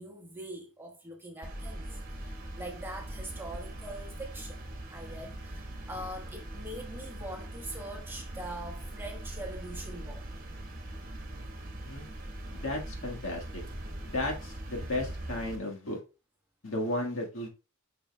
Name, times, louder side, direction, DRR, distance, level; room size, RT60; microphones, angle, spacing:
voice 1, 0.0-4.6 4.9-10.3, right 1 dB, 10° right, 1.3 m, -43 dB
sound 1, 1.4-15.6, right 1 dB, 40° right, 1.3 m, -41 dB
voice 2, 12.5-13.6 14.0-16.0 16.6-17.5, left 1 dB, 65° left, 1.7 m, -34 dB
7.1 x 6.1 x 2.3 m
head